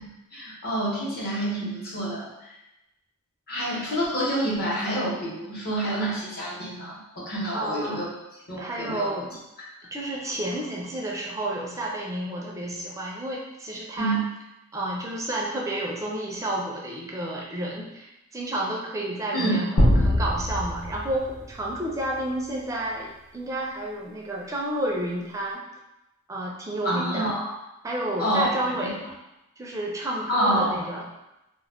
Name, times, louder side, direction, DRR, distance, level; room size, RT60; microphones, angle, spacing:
voice 1, 0.3-2.3 3.5-8.0 8.5-9.1 14.0-14.2 19.3-19.6 26.8-27.6 28.2-28.5 30.3-30.8, right 1 dB, 45° left, -6 dB, 0.8 m, -27 dB
voice 2, 7.5-8.0 8.6-9.3 9.9-14.2 14.7-25.6 26.3-27.4 27.8-29.0 29.6-31.1, right 1 dB, 15° right, -3 dB, 0.4 m, -31 dB
sound 1, 19.8-22.3, equal, 75° left, 0.7 m, -23 dB
2.3 x 2.1 x 3.3 m, 0.93 s
head